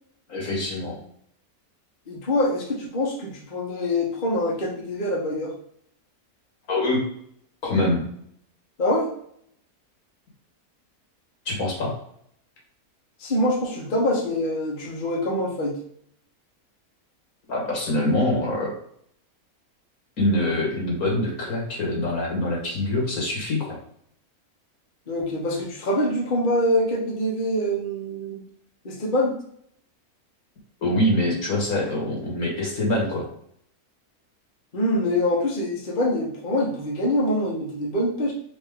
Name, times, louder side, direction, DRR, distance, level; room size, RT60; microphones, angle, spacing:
voice 1, 0.3-1.0 6.7-7.0 7.6-8.0 11.5-11.9 17.5-18.7 20.2-23.8 30.8-33.3, left 1 dB, 75° left, -2 dB, 2.3 m, -24 dB
voice 2, 2.1-5.5 8.8-9.1 13.2-15.8 25.1-28.4 28.8-29.4 34.7-38.3, left 1 dB, 35° left, -2 dB, 1.1 m, -25 dB
5.2 x 2.8 x 3.6 m, 0.67 s
omnidirectional pair, 1.5 m